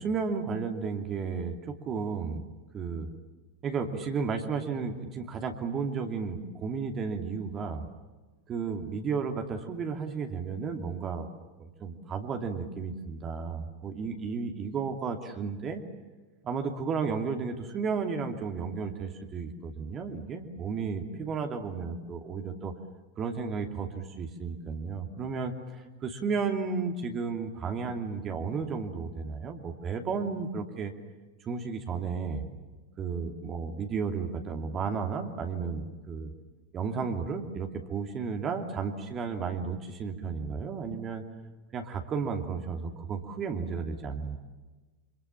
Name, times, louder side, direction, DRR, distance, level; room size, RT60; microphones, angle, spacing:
voice 1, 0.0-2.4 2.7-3.1 3.6-7.8 8.5-11.3 11.6-15.8 16.4-22.7 23.2-30.9 31.4-32.4 33.0-36.3 36.7-41.2 41.7-44.4, right 5 dB, 25° right, 4 dB, 2.9 m, -33 dB
27.5 x 26.5 x 7.4 m, 1.3 s
figure-of-eight pair, 90°, 0 cm